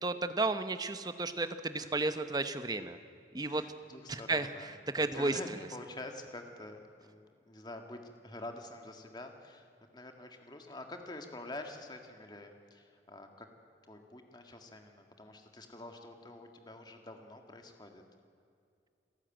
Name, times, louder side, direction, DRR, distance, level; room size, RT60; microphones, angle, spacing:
voice 1, 0.0-3.0 3.3-3.6 4.1-5.4, right 2 dB, 25° right, 10 dB, 0.9 m, -33 dB
voice 2, 3.5-4.7 5.0-9.7 9.9-13.5 13.9-18.0, left 2 dB, 25° left, 4 dB, 1.8 m, -47 dB
27.5 x 13.0 x 9.0 m, 2.5 s
head